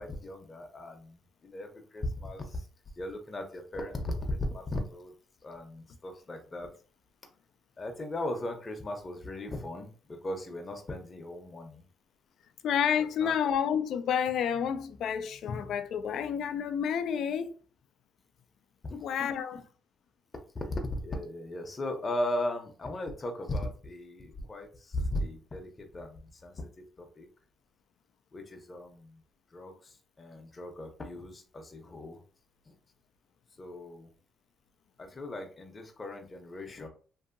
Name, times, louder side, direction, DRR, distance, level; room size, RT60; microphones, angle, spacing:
voice 1, 0.0-2.7 3.0-5.1 5.4-6.7 7.8-11.8 13.0-13.3 18.8-19.6 20.5-26.7 27.0-27.3 28.3-29.2 29.5-32.2 32.7-32.8 33.6-34.1 35.0-36.9, left 1 dB, 30° left, 0.7 m, -37 dB
voice 2, 12.6-17.5 19.0-19.6, left 8 dB, 75° left, 0.3 m, -30 dB
2.7 x 2.6 x 2.5 m
cardioid pair, 90°, 0 cm